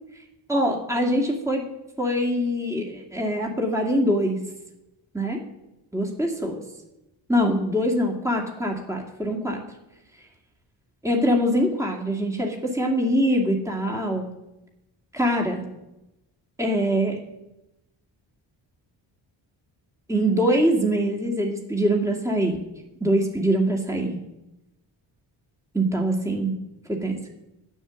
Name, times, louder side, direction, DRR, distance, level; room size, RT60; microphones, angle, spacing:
voice 1, 0.5-1.7 2.0-4.4 5.1-5.4 5.9-6.6 7.3-9.6 11.0-14.3 15.1-15.7 16.6-17.2 20.1-22.6 23.0-24.2 25.7-26.6 26.9-27.2, equal, 5° right, 0 dB, 2.1 m, -23 dB
8.8 x 7.3 x 7.0 m, 0.94 s
supercardioid pair, 55°, 49 cm